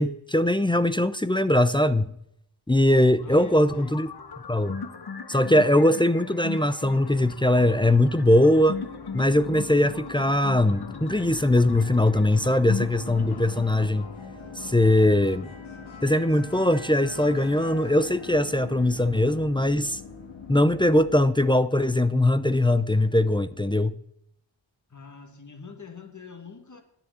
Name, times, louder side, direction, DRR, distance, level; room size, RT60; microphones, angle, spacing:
voice 1, 0.0-2.1 2.7-4.1 4.5-4.8 5.3-8.8 9.1-14.1 14.6-15.5 16.0-20.0 20.5-23.9, left 1 dB, 10° left, 0.5 m, -21 dB
sound 1, 3.1-13.9, left 5 dB, 55° left, 1.2 m, -39 dB
voice 2, 3.2-4.0 24.9-26.8, left 5 dB, 40° left, 2.0 m, -45 dB
sound 2, 7.5-21.2, left 4 dB, 85° left, 2.0 m, -42 dB
10.5 x 7.1 x 8.3 m
wide cardioid pair, 75°, 46 cm